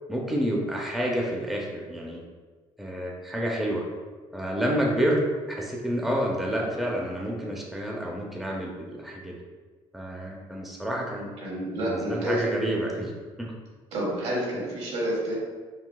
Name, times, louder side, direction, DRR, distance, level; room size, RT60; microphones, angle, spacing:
voice 1, 0.1-2.2 2.8-3.8 4.3-5.2 5.5-9.3 9.9-11.3 11.8-13.1 13.4-13.5, equal, ahead, -2 dB, 0.5 m, -29 dB
voice 2, 11.4-13.0 13.9-15.4, right 1 dB, 70° right, -5 dB, 1.3 m, -29 dB
3.9 x 2.2 x 2.3 m, 1.4 s
supercardioid pair, 75°, 12 cm